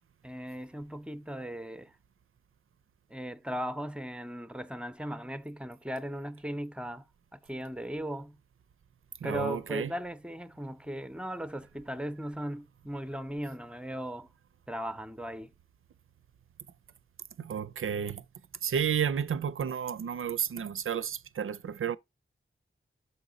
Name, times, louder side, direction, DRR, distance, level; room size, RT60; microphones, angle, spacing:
voice 1, 0.2-1.9 3.1-7.0 7.3-8.4 9.2-14.3 14.7-15.5, equal, 5° right, 0.6 m, -37 dB
voice 2, 9.2-9.9 17.4-18.2 18.6-22.0, right 8 dB, 85° right, 0.4 m, -31 dB
6.7 x 4.1 x 3.8 m
wide cardioid pair, 50°, 21 cm